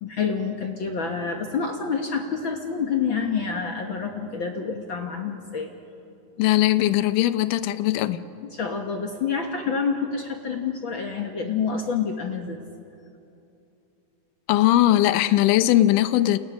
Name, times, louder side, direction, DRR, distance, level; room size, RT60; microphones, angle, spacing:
voice 1, 0.0-5.7 8.5-12.6, left 5 dB, 55° left, 3 dB, 1.4 m, -28 dB
voice 2, 6.4-8.2 14.5-16.4, left 14 dB, 75° left, 12 dB, 2.3 m, -19 dB
29.0 x 28.5 x 6.1 m, 2.7 s
omnidirectional pair, 4.0 m